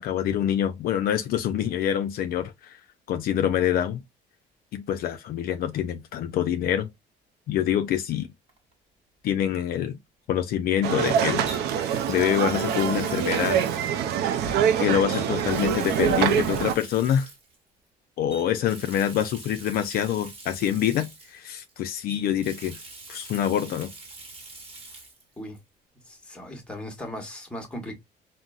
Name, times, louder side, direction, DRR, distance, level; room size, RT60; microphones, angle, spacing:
voice 1, 0.0-2.8 3.1-4.0 4.7-6.9 7.5-8.3 9.2-10.0 10.3-13.6 14.8-17.3 18.2-22.8 23.1-23.9, left 10 dB, 60° left, 0.4 m, -26 dB
Water tap faucet, 8.5-8.7 11.5-14.5 15.1-17.6 18.3-21.7 22.1-25.2 25.5-25.6 27.2-27.3, right 2 dB, 35° right, 1.1 m, -45 dB
sound 1, 10.8-16.8, right 8 dB, 75° right, 0.4 m, -25 dB
voice 2, 26.1-27.9, left 1 dB, 5° left, 1.0 m, -37 dB
3.8 x 2.0 x 2.3 m
cardioid pair, 110°, 17 cm